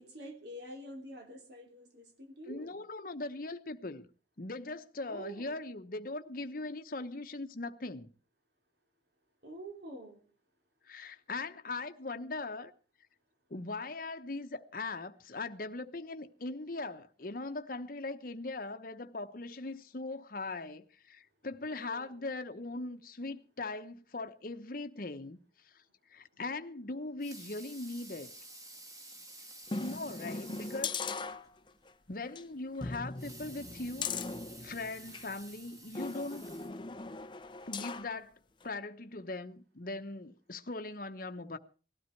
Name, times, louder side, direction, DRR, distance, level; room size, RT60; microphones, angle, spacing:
voice 1, 0.0-2.8 5.1-5.6 9.4-10.2 21.7-22.2, right 1 dB, 65° right, 3.3 m, -47 dB
voice 2, 2.5-4.1 4.4-8.1 10.9-12.7 13.5-25.4 25.7-25.8 26.1-28.3 29.8-31.0 32.1-34.1 34.6-36.5 37.7-41.6, left 2 dB, 50° left, 1.0 m, -40 dB
Water tap faucet / Sink (filling or washing) / Liquid, 27.0-31.0 31.4-31.5 31.8-31.9 33.0-37.2 37.8-37.9, right 2 dB, 20° right, 2.3 m, -51 dB
sound 1, 29.7-31.9 32.3-32.4 32.8-35.3 35.9-38.1 38.6-38.7, left 4 dB, 25° left, 0.7 m, -39 dB
19.0 x 12.5 x 4.6 m
head